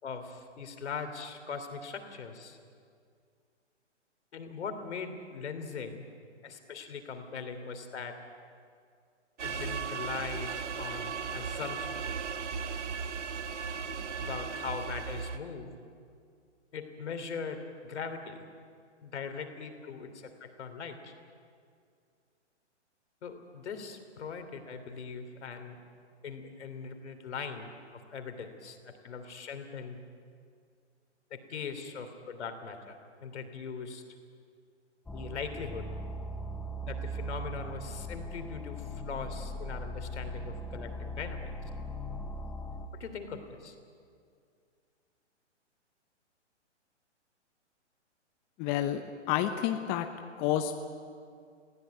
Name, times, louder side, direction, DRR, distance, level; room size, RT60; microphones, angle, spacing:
voice 1, 0.0-2.6 4.3-6.0 6.4-8.2 9.4-11.9 14.2-15.7 16.7-18.5 19.0-21.1 23.2-25.8 26.2-30.0 31.3-34.0 35.1-35.9 36.9-41.5 42.9-43.7, left 5 dB, 70° left, 7 dB, 3.2 m, -40 dB
sound 1, 9.4-15.4, right 6 dB, 75° right, 1.3 m, -36 dB
sound 2, 35.1-42.9, equal, 5° left, 0.6 m, -39 dB
voice 2, 48.6-49.0 49.3-50.1 50.4-50.7, left 11 dB, 25° left, 6 dB, 0.9 m, -29 dB
21.0 x 16.0 x 9.5 m, 2.3 s
hypercardioid pair, 130°, 36 cm